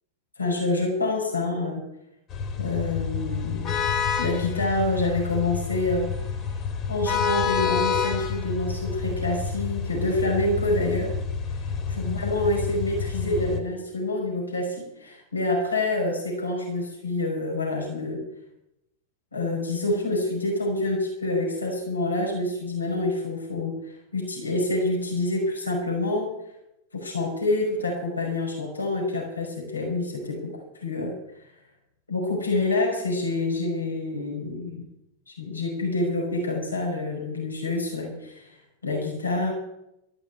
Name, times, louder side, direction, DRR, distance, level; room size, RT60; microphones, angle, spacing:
voice 1, 0.4-1.8 2.6-3.7 4.2-6.1 6.9-11.2 12.0-18.2 19.3-26.3 26.9-31.2 32.1-34.8 35.3-38.6 38.8-39.5, left 2 dB, 80° left, 0 dB, 5.5 m, -27 dB
sound 1, 2.3-13.6, left 6 dB, 30° left, 2.9 m, -29 dB
13.5 x 12.5 x 8.2 m, 0.86 s
figure-of-eight pair, 90°, 0 cm